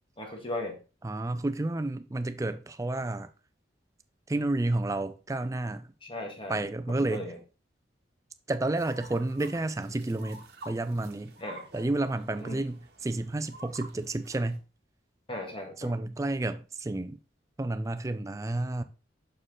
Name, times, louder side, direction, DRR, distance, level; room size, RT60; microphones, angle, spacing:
voice 1, 0.2-0.8 6.0-6.6 6.9-7.3 11.4-11.6 12.4-12.6 15.3-15.9, left 1 dB, 30° left, 1.4 m, -37 dB
voice 2, 1.0-3.3 4.3-5.9 6.5-7.3 8.5-11.3 11.7-14.6 15.8-17.2 17.6-18.8, right 2 dB, 15° right, 0.4 m, -31 dB
sound 1, 8.7-14.6, right 2 dB, 60° right, 1.2 m, -50 dB
6.4 x 4.5 x 3.6 m
head